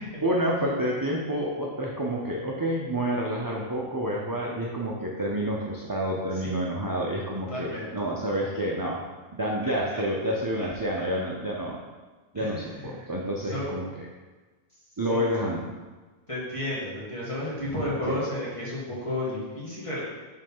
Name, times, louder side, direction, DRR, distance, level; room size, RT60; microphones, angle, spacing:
voice 1, 0.2-9.0 9.4-11.8 12.3-14.1 15.0-15.7 18.0-18.2, equal, 25° right, -3 dB, 0.5 m, -29 dB
voice 2, 7.5-8.1 9.6-10.0 10.6-11.0 12.4-13.1 13.5-13.7 15.1-15.3 16.3-20.0, left 1 dB, 30° left, -7 dB, 1.9 m, -33 dB
5.3 x 3.8 x 5.5 m, 1.3 s
omnidirectional pair, 1.2 m